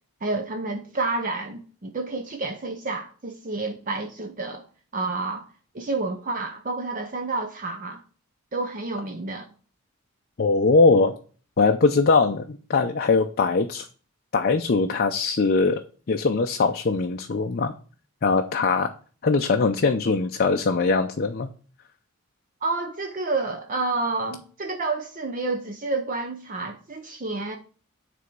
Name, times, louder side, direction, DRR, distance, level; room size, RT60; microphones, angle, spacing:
voice 1, 0.2-4.6 4.9-5.5 5.7-8.0 8.5-9.5 22.6-27.6, right 3 dB, 35° right, 0.6 m, -29 dB
voice 2, 10.4-11.1 11.6-13.9 14.3-15.8 16.1-17.7 18.2-18.9 19.2-21.5, left 4 dB, 45° left, 0.5 m, -21 dB
9.5 x 3.4 x 5.2 m
head